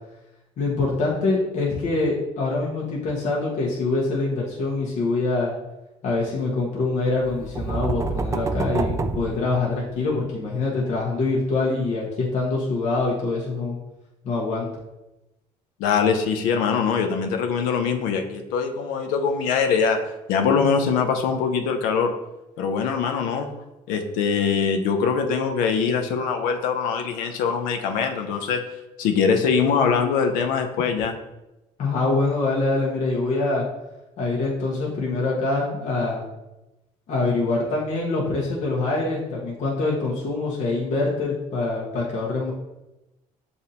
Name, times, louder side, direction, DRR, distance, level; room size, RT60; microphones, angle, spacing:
voice 1, 0.6-5.5 6.0-13.8 14.2-14.7 31.8-33.6 34.2-36.2 37.1-42.5, left 3 dB, 60° left, -4 dB, 1.0 m, -24 dB
sound 1, 7.2-10.1, right 3 dB, 20° right, 0.3 m, -28 dB
voice 2, 15.8-20.0 20.3-22.1 22.6-23.5 23.9-28.6 29.0-31.2, left 6 dB, 85° left, 5 dB, 0.5 m, -22 dB
7.0 x 2.6 x 2.8 m, 0.96 s
cardioid pair, 95°, 14 cm